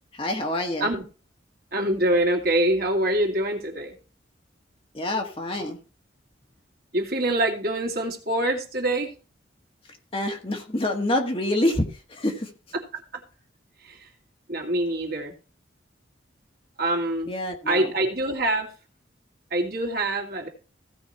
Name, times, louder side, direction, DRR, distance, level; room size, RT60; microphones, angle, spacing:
voice 1, 0.2-0.9 4.9-5.8 10.1-12.5 17.3-17.9, left 1 dB, 30° left, 3 dB, 1.6 m, -26 dB
voice 2, 1.7-4.0 6.9-9.1 12.7-13.2 13.8-14.1 14.5-15.3 16.8-17.3 17.7-18.7 19.5-20.5, right 1 dB, 50° right, 2 dB, 2.5 m, -25 dB
16.0 x 5.3 x 4.3 m, 0.35 s
head